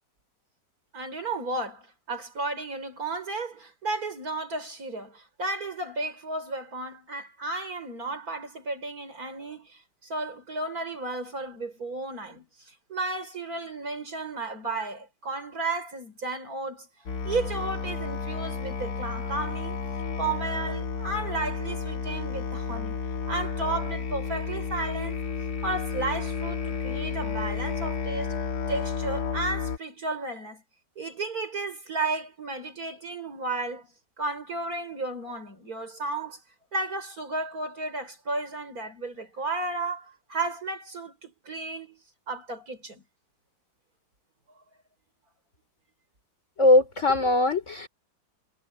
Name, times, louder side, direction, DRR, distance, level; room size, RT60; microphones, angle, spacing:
voice 1, 0.9-16.9 17.2-19.8 20.2-23.0 23.3-25.2 25.6-28.4 28.7-30.6 31.0-33.9 34.2-36.4 36.7-42.0 42.3-43.0, right 3 dB, 55° right, 5.4 m, -33 dB
Musical instrument, 17.1-29.8, left 5 dB, 65° left, 2.2 m, -32 dB
voice 2, 46.6-47.9, left 2 dB, 40° left, 3.5 m, -20 dB
omnidirectional pair, 1.9 m